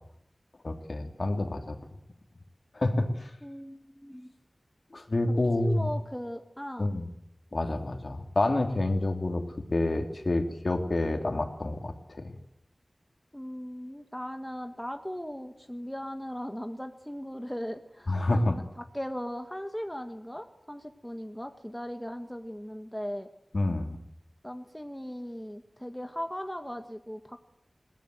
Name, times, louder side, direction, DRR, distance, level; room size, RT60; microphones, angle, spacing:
voice 1, 0.6-1.8 2.7-3.3 4.9-5.9 6.8-7.1 7.5-9.4 9.7-12.3 18.1-18.6 23.5-24.0, left 2 dB, 55° left, 5 dB, 2.9 m, -28 dB
voice 2, 3.4-4.3 5.6-6.9 13.3-23.3 24.4-27.4, equal, 5° left, 6 dB, 1.5 m, -38 dB
21.5 x 18.5 x 7.8 m, 0.76 s
wide cardioid pair, 70°, 0 cm